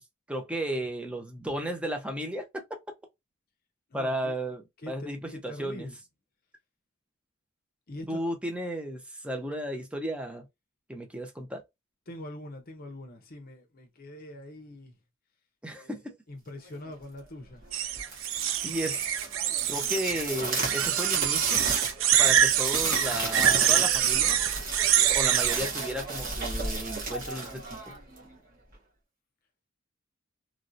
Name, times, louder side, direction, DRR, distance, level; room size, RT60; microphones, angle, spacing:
voice 1, 0.3-2.6 3.9-5.9 8.1-10.5 10.9-11.6 15.6-16.2 18.6-19.1 19.7-21.7 22.2-24.4 25.1-27.9, equal, 5° right, 0.7 m, -34 dB
voice 2, 3.9-4.3 4.8-5.9 7.9-8.2 12.1-14.9 15.8-17.7, left 1 dB, 45° left, 0.7 m, -43 dB
sound 1, 17.7-20.2 20.6-25.7, right 10 dB, 75° right, 0.4 m, -25 dB
sound 2, 18.0-28.3, right 3 dB, 45° right, 1.5 m, -33 dB
3.1 x 2.6 x 2.6 m
head